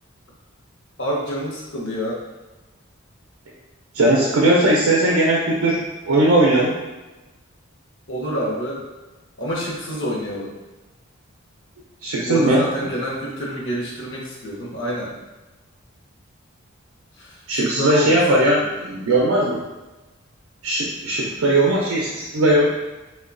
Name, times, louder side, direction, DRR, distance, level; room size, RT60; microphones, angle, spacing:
voice 1, 1.0-2.2 8.1-8.8 9.4-10.5 12.2-15.1 17.2-18.6, left 1 dB, 60° left, -4 dB, 0.7 m, -27 dB
voice 2, 3.9-5.8 6.0-6.7 12.0-12.9 17.5-19.6 20.6-22.7, right 1 dB, 85° right, -4 dB, 0.4 m, -18 dB
2.9 x 2.1 x 2.4 m, 1.1 s
head